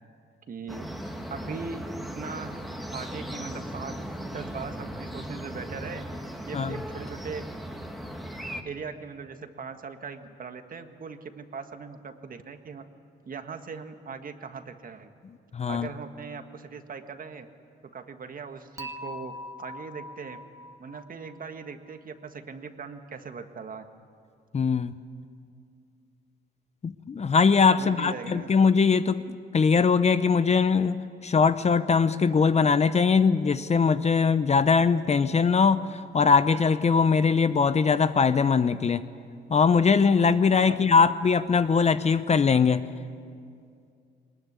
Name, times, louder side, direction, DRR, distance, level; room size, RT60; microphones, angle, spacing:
voice 1, 0.5-0.9 1.3-1.8 2.1-2.5 2.9-4.0 4.3-6.0 6.4-7.4 8.6-12.8 13.2-15.1 15.7-17.5 17.9-20.4 20.8-23.8 27.8-28.5 40.7-40.8, right 5 dB, 45° right, 7 dB, 1.7 m, -39 dB
sound 1, 0.7-8.6, equal, ahead, 2.0 m, -37 dB
voice 2, 15.5-15.9 24.5-24.9 26.8-39.1 39.5-42.9, left 5 dB, 35° left, 13 dB, 0.7 m, -21 dB
Dishes pots and pans / Chink clink, 18.8-21.9, left 1 dB, 15° right, 1.8 m, -42 dB
21.0 x 20.0 x 9.6 m, 2.3 s
cardioid pair, 90°, 20 cm